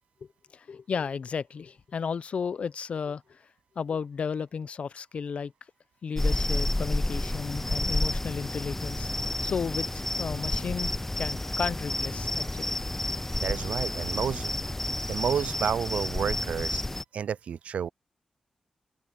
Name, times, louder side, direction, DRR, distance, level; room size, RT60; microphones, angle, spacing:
voice 1, 0.5-3.5 3.8-5.5 6.0-9.1 9.4-10.9 11.2-12.8, left 6 dB, 65° left, 0.6 m, -33 dB
sound 1, 6.2-17.0, left 1 dB, 15° left, 0.3 m, -30 dB
voice 2, 13.4-14.5 15.0-16.8 17.1-17.9, right 8 dB, 80° right, 0.4 m, -30 dB
cardioid pair, 60°, 2 cm